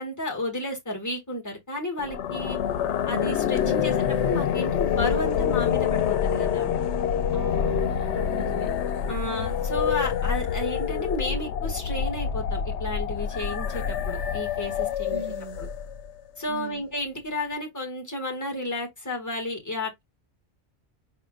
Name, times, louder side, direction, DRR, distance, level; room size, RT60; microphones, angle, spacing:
voice 1, 0.0-2.6 3.1-6.7 9.1-15.2 15.6-15.7 16.4-20.0, left 1 dB, 15° left, 1.8 m, -32 dB
sound 1, 2.0-16.1, left 8 dB, 85° left, 0.9 m, -26 dB
voice 2, 3.6-4.0 7.3-8.7 9.0-9.5 15.1-15.6 16.5-16.8, right 4 dB, 40° right, 1.1 m, -39 dB
5.0 x 3.6 x 2.3 m
omnidirectional pair, 1.1 m